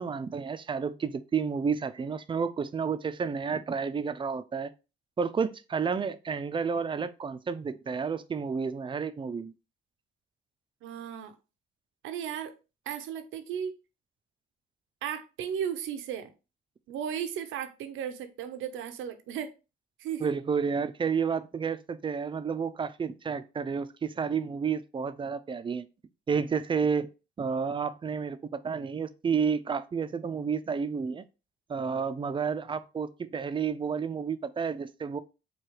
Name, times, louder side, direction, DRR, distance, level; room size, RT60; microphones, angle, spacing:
voice 1, 0.0-4.7 5.2-9.5 20.2-25.9 26.3-27.1 27.4-28.4 28.6-31.2 31.7-35.2, right 6 dB, 25° right, 0.3 m, -31 dB
voice 2, 10.8-11.3 12.0-12.5 12.9-13.7 15.0-16.3 16.9-19.5 20.0-20.3, right 8 dB, 85° right, 0.6 m, -35 dB
4.5 x 2.3 x 3.1 m
cardioid pair, 90°, 20 cm